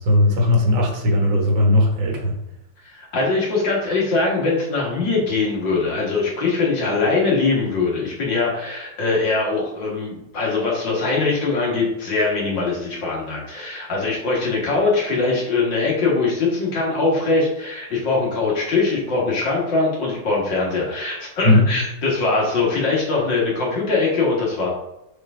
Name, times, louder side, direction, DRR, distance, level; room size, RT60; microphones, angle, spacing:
voice 1, 0.1-2.3 21.4-21.7, left 1 dB, 65° right, 0 dB, 2.1 m, -17 dB
voice 2, 2.8-24.7, left 3 dB, 55° left, -3 dB, 2.6 m, -22 dB
6.3 x 4.7 x 3.8 m, 0.90 s
omnidirectional pair, 2.4 m